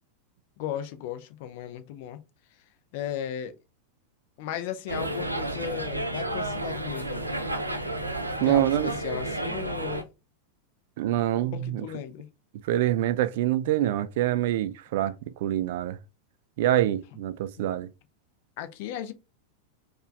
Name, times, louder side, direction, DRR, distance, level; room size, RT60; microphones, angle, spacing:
voice 1, 0.6-2.2 2.5-2.6 2.9-3.6 4.4-7.2 8.4-10.0 11.4-12.3 18.6-19.1, left 10 dB, 50° left, 0.5 m, -36 dB
sound 1, 4.9-10.0, right 1 dB, 85° right, 0.6 m, -31 dB
voice 2, 8.4-8.9 11.0-11.8 12.6-15.1 15.4-16.0 16.6-17.9, right 13 dB, 50° right, 0.3 m, -25 dB
4.5 x 2.4 x 3.2 m
figure-of-eight pair, 90°, 0 cm